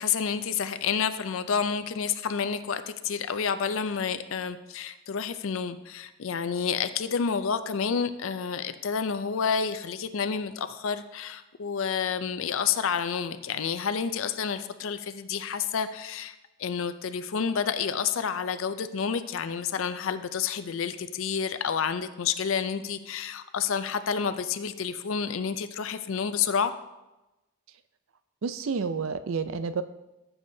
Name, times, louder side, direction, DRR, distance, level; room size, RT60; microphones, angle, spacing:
voice 1, 0.0-16.3 16.6-26.7, left 6 dB, 65° left, 11 dB, 0.4 m, -29 dB
voice 2, 28.4-29.8, right 5 dB, 65° right, 11 dB, 0.4 m, -30 dB
14.5 x 7.1 x 2.7 m, 1.0 s
head